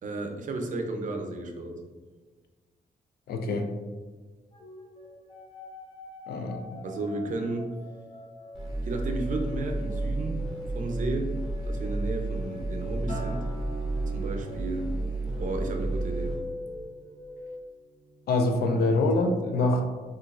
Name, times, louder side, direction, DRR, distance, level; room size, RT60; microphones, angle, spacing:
voice 1, 0.0-1.8 6.8-7.7 8.9-10.4 10.8-11.3 11.7-13.4 14.1-14.9 15.4-16.4 18.6-19.0, right 2 dB, 55° right, 3 dB, 0.5 m, -33 dB
voice 2, 3.3-3.7 6.3-6.8 18.3-19.8, left 2 dB, 80° left, 4 dB, 0.4 m, -25 dB
sound 1, 4.5-13.7 14.0-17.6, left 3 dB, 30° left, 0.5 m, -44 dB
sound 2, 8.5-16.3, right 2 dB, ahead, 1.1 m, -32 dB
Acoustic guitar, 13.1-17.5 17.9-18.3, right 1 dB, 50° left, 0.8 m, -44 dB
3.9 x 2.4 x 2.4 m, 1.4 s
cardioid pair, 105°, 16 cm